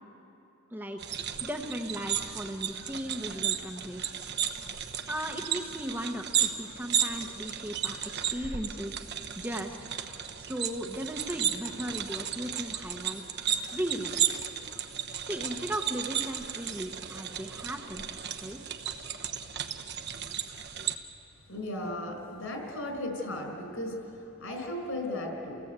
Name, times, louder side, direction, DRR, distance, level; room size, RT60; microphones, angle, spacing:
voice 1, 0.7-1.0 1.4-4.0 5.1-9.1 9.3-9.8 10.4-13.2 13.7-14.1 15.3-18.1 18.4-18.6, equal, 10° right, 2 dB, 1.0 m, -36 dB
sound 1, 1.0-21.0, right 9 dB, 50° right, 1.2 m, -34 dB
voice 2, 21.5-25.6, left 1 dB, 70° left, 3 dB, 5.3 m, -36 dB
29.5 x 17.5 x 8.2 m, 3.0 s
head